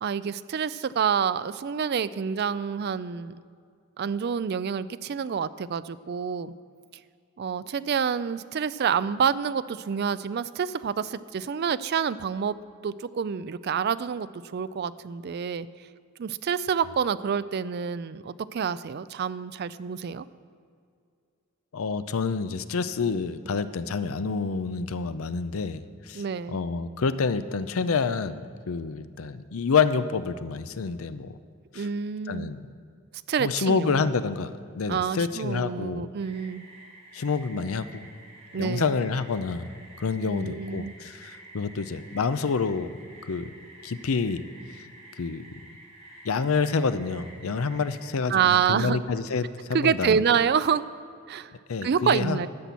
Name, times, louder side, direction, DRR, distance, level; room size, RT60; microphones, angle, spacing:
voice 1, 0.0-3.4 4.0-6.5 7.4-12.6 12.8-15.7 16.2-20.3 26.1-26.6 31.7-32.6 33.3-34.0 34.9-36.7 38.5-39.0 40.3-40.9 48.3-49.0 49.7-50.9 51.3-51.5 51.8-52.5, right 7 dB, 50° right, 15 dB, 0.3 m, -27 dB
voice 2, 21.7-31.4 31.7-31.9 32.3-32.6 33.4-36.1 37.1-38.1 38.5-39.7 40.0-42.9 43.3-43.5 43.8-44.4 44.7-44.9 45.2-45.4 46.2-50.2 51.7-52.4, left 5 dB, 75° left, 13 dB, 0.5 m, -28 dB
sound 1, 36.2-48.1, right 1 dB, 30° right, 2.2 m, -50 dB
12.0 x 6.0 x 8.2 m, 2.3 s
head